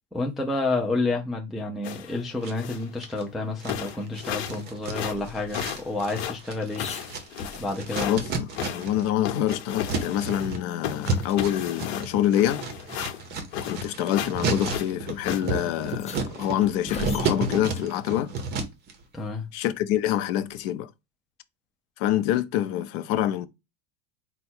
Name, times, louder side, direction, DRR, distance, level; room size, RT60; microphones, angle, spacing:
voice 1, 0.1-6.9 7.6-8.2 19.1-19.5, left 2 dB, ahead, 0.3 m, -29 dB
sound 1, 1.8-2.2 2.6-2.9 3.3-3.4 3.7-4.6 4.9-8.2 8.5-10.6 10.8-13.8 14.1-14.4 14.7-15.4, left 10 dB, 70° left, 0.9 m, -34 dB
sound 2, 2.4-3.2 3.6-9.1 9.3-18.9, right 3 dB, 30° right, 0.8 m, -32 dB
sound 3, 6.7-8.1 8.5-8.6 8.9-10.4 10.7-10.8 11.2-11.4 12.4-12.5 13.4-13.7 14.7-14.8 15.1-15.2 15.8-18.0 20.2-20.7, left 4 dB, 20° left, 1.0 m, -42 dB
voice 2, 8.0-12.6 13.6-18.3 19.5-20.9 22.0-23.5, left 12 dB, 50° left, 0.5 m, -26 dB
4.6 x 2.2 x 4.3 m
supercardioid pair, 160°, 33 cm